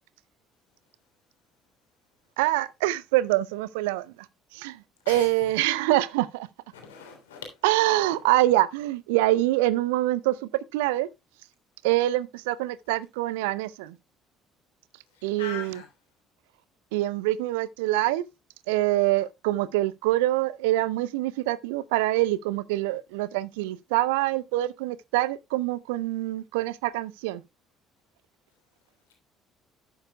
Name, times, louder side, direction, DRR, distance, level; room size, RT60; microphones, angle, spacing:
voice 1, 2.4-4.1 4.5-6.5 7.6-10.4 10.7-11.1 11.8-14.0 15.2-15.8 16.9-18.2 18.7-27.4, right 16 dB, 70° right, 0.5 m, -25 dB
voice 2, 5.1-5.5 6.7-7.6 8.0-8.1 15.1-15.9, left 6 dB, 75° left, 3.5 m, -41 dB
12.0 x 9.4 x 2.2 m
figure-of-eight pair, 50°, 0 cm